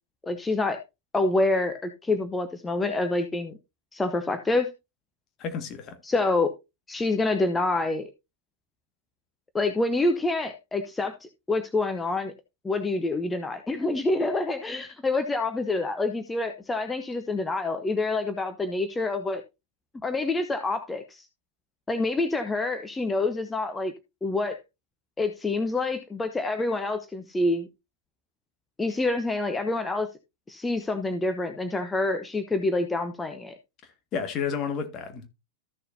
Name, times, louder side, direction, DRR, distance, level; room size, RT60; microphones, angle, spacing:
voice 1, 0.3-0.8 1.1-3.6 3.9-4.7 6.0-6.5 6.9-8.1 9.5-12.3 12.6-19.4 20.0-21.3 21.9-23.9 24.2-24.6 25.2-27.7 28.8-30.1 30.5-33.5, left 2 dB, 10° left, 0.9 m, -27 dB
voice 2, 5.4-6.0 34.1-35.3, left 6 dB, 35° left, 1.8 m, -31 dB
14.0 x 6.7 x 2.7 m
figure-of-eight pair, 90°, 0 cm